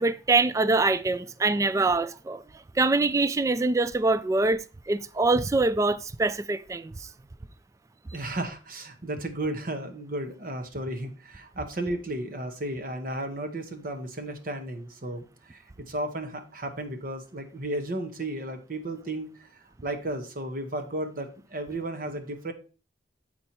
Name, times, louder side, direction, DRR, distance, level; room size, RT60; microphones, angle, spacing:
voice 1, 0.0-2.4 2.8-6.9, right 3 dB, 15° right, 0.3 m, -24 dB
voice 2, 8.1-22.5, right 1 dB, 50° right, 0.9 m, -34 dB
8.0 x 4.4 x 4.3 m
head